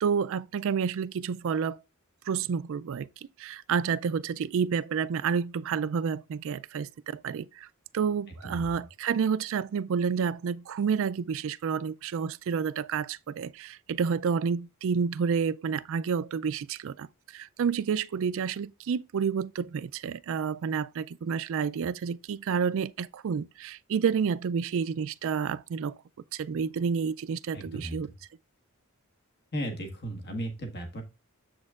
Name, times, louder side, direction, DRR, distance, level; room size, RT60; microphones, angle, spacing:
voice 1, 0.0-1.8 2.3-3.1 3.4-7.7 7.9-26.0 26.3-28.1, right 6 dB, 65° right, 0.3 m, -29 dB
voice 2, 27.5-28.1 29.5-31.0, right 1 dB, 50° left, 1.5 m, -35 dB
7.6 x 6.3 x 2.4 m
head